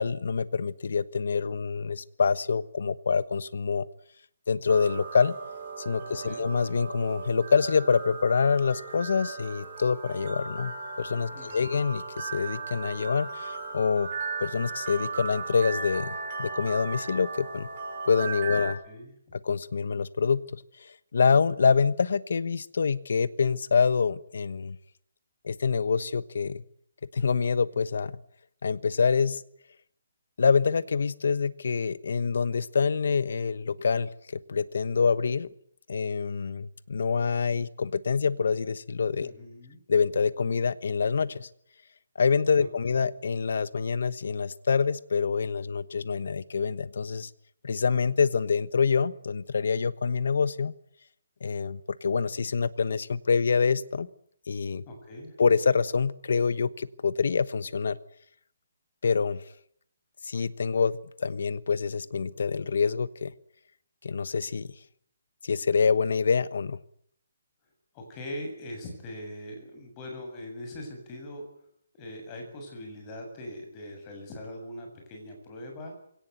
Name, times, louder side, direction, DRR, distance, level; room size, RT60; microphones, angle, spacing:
voice 1, 0.0-3.8 4.5-5.4 5.8-14.1 14.4-17.7 18.0-18.8 19.4-24.8 25.4-26.6 27.1-28.2 28.6-29.4 30.4-34.1 34.5-35.5 35.9-39.3 39.9-41.5 42.2-47.3 47.6-50.7 51.4-54.1 54.5-54.8 55.4-58.0 59.0-59.4 60.2-63.3 64.0-64.7 65.4-66.8, left 5 dB, 65° left, 17 dB, 1.2 m, -26 dB
sound 1, 4.7-18.7, right 4 dB, 35° right, 7.3 m, -37 dB
voice 2, 6.1-6.5 11.3-11.8 18.5-19.1 39.2-39.8 42.6-43.0 54.9-55.3 67.9-71.4 71.9-76.0, left 1 dB, 20° left, 3 dB, 7.3 m, -41 dB
22.5 x 18.0 x 9.4 m, 0.68 s
hypercardioid pair, 165°, 0 cm